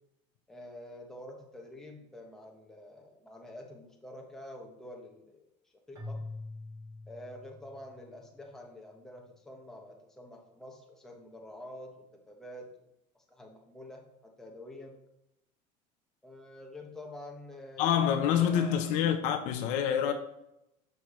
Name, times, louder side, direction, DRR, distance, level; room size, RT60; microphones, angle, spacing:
voice 1, 0.5-5.5 5.9-6.2 7.1-12.9 13.3-15.0 16.2-18.9, left 1 dB, 5° left, 1.2 m, -47 dB
Keyboard (musical), 5.9-8.2, left 2 dB, 25° right, 1.6 m, -44 dB
voice 2, 17.8-20.1, left 9 dB, 55° left, 0.8 m, -27 dB
10.5 x 7.0 x 3.2 m
cardioid pair, 175°, 15 cm